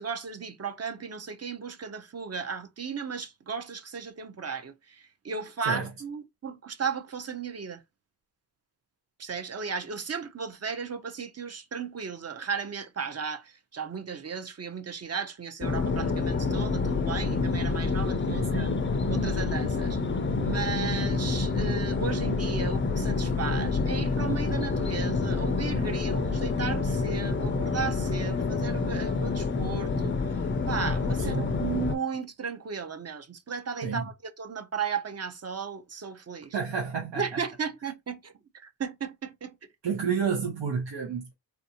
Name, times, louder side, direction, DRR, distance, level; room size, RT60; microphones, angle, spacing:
voice 1, 0.0-7.8 9.2-18.7 19.1-20.0 20.4-36.6 37.2-39.5, right 6 dB, 35° right, 0.6 m, -35 dB
sound 1, 15.6-32.0, left 4 dB, 30° left, 0.4 m, -28 dB
voice 2, 18.3-18.6 31.2-31.6 33.8-34.0 36.5-37.4 39.8-41.3, right 6 dB, 80° right, 0.8 m, -30 dB
3.4 x 2.5 x 2.7 m
wide cardioid pair, 100°, 42 cm